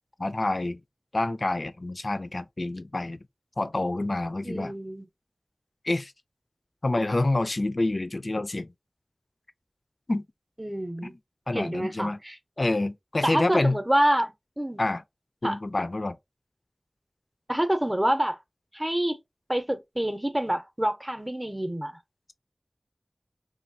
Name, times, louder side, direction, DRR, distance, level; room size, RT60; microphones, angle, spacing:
voice 1, 0.2-0.8 1.1-3.3 3.6-4.7 5.8-6.1 6.8-8.7 10.1-10.2 11.0-11.1 11.5-12.2 12.6-13.8 14.8-15.0 15.4-16.2, left 2 dB, 65° left, 0.4 m, -27 dB
voice 2, 4.4-5.0 10.6-11.1 11.5-12.4 13.2-14.8 15.4-15.6 17.5-18.4 18.7-19.2 19.5-22.0, right 1 dB, 15° right, 0.6 m, -27 dB
3.2 x 2.3 x 2.6 m
wide cardioid pair, 55°, 0 cm